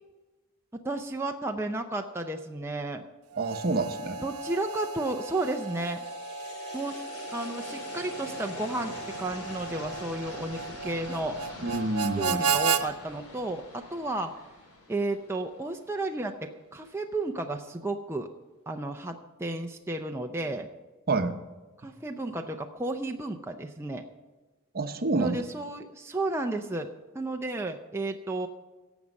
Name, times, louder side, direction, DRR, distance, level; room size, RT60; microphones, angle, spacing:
voice 1, 0.8-3.0 4.2-6.0 6.7-6.9 7.3-11.4 12.1-14.3 14.9-18.3 18.7-20.7 21.8-24.0 25.2-26.9 27.1-28.5, right 2 dB, 10° right, 3 dB, 0.6 m, -33 dB
Harmonica, 3.3-12.8, right 5 dB, 85° right, 0.7 m, -34 dB
voice 2, 3.4-4.2 11.6-12.4 21.1-21.4 24.7-25.4, right 3 dB, 45° right, 8 dB, 0.9 m, -28 dB
sound 1, 5.1-16.2, left 2 dB, 80° left, 3.0 m, -45 dB
17.0 x 7.1 x 5.3 m, 1.2 s
head